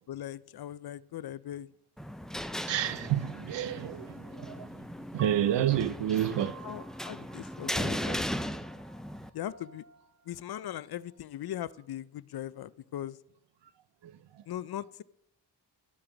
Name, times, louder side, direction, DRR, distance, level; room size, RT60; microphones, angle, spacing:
voice 1, 0.1-1.7 6.6-8.3 9.3-9.8 10.3-13.2 14.5-15.0, left 11 dB, 65° left, 0.5 m, -39 dB
sound 1, 2.0-9.3, equal, ahead, 0.4 m, -37 dB
voice 2, 2.7-4.7 5.1-6.6, right 11 dB, 85° right, 0.7 m, -29 dB
Piano, 5.2-11.4, right 7 dB, 40° right, 0.8 m, -53 dB
12.5 x 8.8 x 5.1 m
wide cardioid pair, 140°, 42 cm